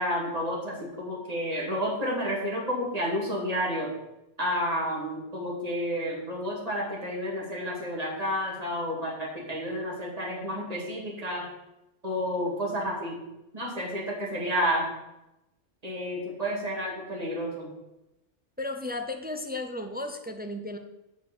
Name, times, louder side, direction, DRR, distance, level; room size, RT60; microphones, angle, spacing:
voice 1, 0.0-3.9 4.4-11.4 12.0-13.2 13.5-14.9 15.8-17.7, equal, 30° right, -3 dB, 2.5 m, -30 dB
voice 2, 18.6-20.8, left 2 dB, 15° right, 6 dB, 0.3 m, -34 dB
7.3 x 5.4 x 7.1 m, 0.94 s
omnidirectional pair, 1.2 m